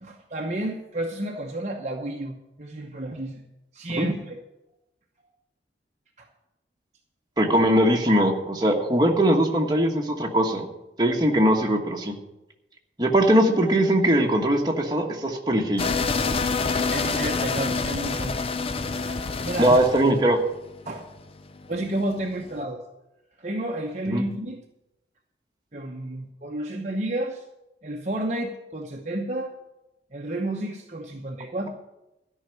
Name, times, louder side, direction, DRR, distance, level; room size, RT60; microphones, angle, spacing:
voice 1, 0.0-3.4 3.7-4.4 6.2-6.3 16.9-18.5 19.0-19.8 20.9-21.1 21.7-22.8 23.4-24.6 25.7-27.4 27.8-29.5 30.1-31.7, right 1 dB, 40° right, 1 dB, 0.9 m, -31 dB
voice 2, 7.4-10.7 11.0-12.1 13.0-15.9 19.6-20.4 24.1-24.2, right 1 dB, 20° right, 1 dB, 1.3 m, -21 dB
sound 1, 15.8-22.5, left 4 dB, 30° left, 0.5 m, -27 dB
13.0 x 5.7 x 9.2 m, 0.93 s
head